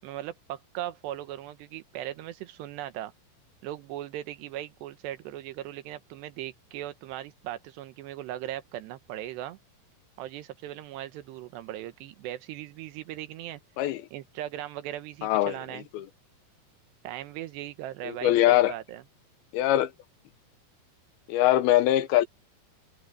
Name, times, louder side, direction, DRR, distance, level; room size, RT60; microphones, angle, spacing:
voice 1, 0.0-3.1 3.6-9.6 10.2-13.6 14.1-15.9 17.0-19.0, right 13 dB, 80° right, 3.3 m, -38 dB
voice 2, 15.2-15.5 15.9-16.1 18.1-18.7 19.5-19.9 21.3-22.3, left 14 dB, 75° left, 2.5 m, -22 dB
open air
omnidirectional pair, 4.8 m